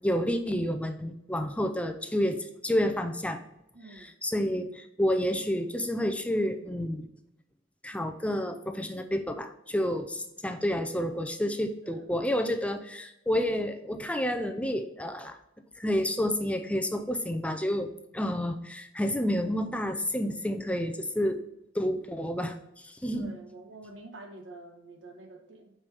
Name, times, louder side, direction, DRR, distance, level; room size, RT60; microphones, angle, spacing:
voice 1, 0.0-3.4 3.9-7.1 7.8-15.4 15.8-21.4 21.7-23.4, equal, 5° left, 7 dB, 0.6 m, -30 dB
voice 2, 3.7-4.1 10.2-10.3 11.8-12.1 23.1-25.7, right 2 dB, 90° right, 4 dB, 1.4 m, -47 dB
8.5 x 5.4 x 3.5 m, 0.83 s
head